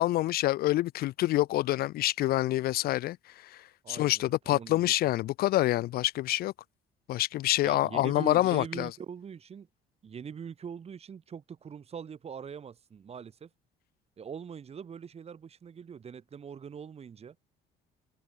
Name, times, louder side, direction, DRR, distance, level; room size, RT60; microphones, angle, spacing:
voice 1, 0.0-6.5 7.1-8.9, left 15 dB, 65° left, 0.4 m, -27 dB
voice 2, 3.8-4.9 7.6-9.7 10.0-13.5 14.2-17.4, right 7 dB, 35° right, 2.1 m, -42 dB
open air
cardioid pair, 110°, 17 cm